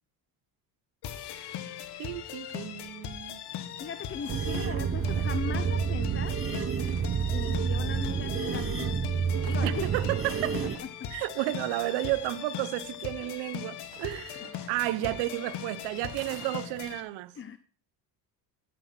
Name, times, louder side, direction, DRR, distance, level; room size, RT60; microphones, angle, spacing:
sound 1, 1.0-17.0, left 10 dB, 65° left, 1.6 m, -40 dB
voice 1, 2.0-3.4 9.6-10.6 11.1-17.3, right 17 dB, 80° right, 0.9 m, -32 dB
sound 2, 3.4-17.0, right 9 dB, 55° right, 2.1 m, -51 dB
voice 2, 3.8-6.4 7.3-9.1 9.5-9.9 10.8-11.1 14.6-14.7 15.0-15.1 17.3-17.6, left 6 dB, 30° left, 0.8 m, -39 dB
sound 3, 4.3-10.8, right 7 dB, 30° right, 0.9 m, -29 dB
13.0 x 7.8 x 5.9 m
cardioid pair, 95°, 42 cm